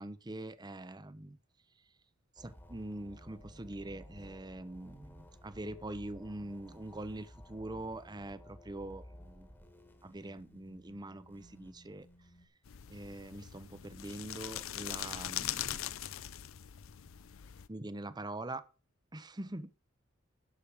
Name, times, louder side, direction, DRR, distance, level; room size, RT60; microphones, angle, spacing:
voice 1, 0.0-1.4 2.4-9.5 10.0-12.1 12.9-16.1 17.7-18.6 19.1-19.8, right 1 dB, 20° right, 0.7 m, -44 dB
sound 1, 2.4-12.5, equal, 10° left, 1.5 m, -55 dB
sound 2, 12.7-17.7, left 12 dB, 80° left, 0.6 m, -41 dB
11.5 x 5.1 x 7.1 m
head